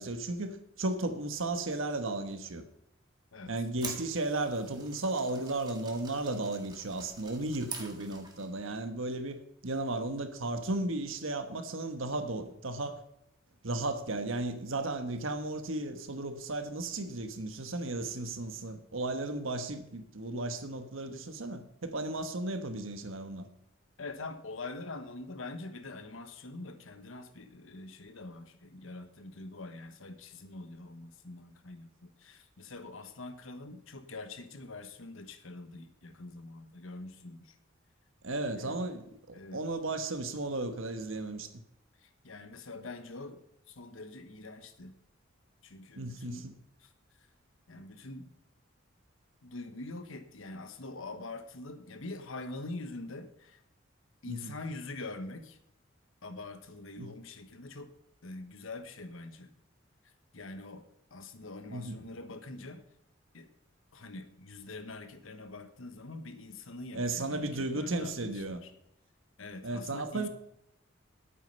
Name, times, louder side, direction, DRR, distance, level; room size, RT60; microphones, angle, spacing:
voice 1, 0.0-2.6 3.5-13.0 13.6-23.5 38.2-41.5 46.0-46.5 54.3-54.5 57.0-57.1 61.7-62.0 66.9-68.6 69.6-70.3, right 2 dB, 80° right, 1.3 m, -35 dB
sound 1, 3.5-8.6, right 4 dB, 20° right, 1.7 m, -46 dB
voice 2, 24.0-37.6 38.5-38.8 39.3-39.7 42.0-45.0 45.6-46.5 46.8-46.9 47.7-48.3 49.4-53.6 54.2-55.6 56.2-57.9 58.2-59.5 60.3-62.8 63.3-63.5 63.9-68.7 69.4-70.3, left 2 dB, 85° left, 1.2 m, -44 dB
11.0 x 8.5 x 5.4 m
head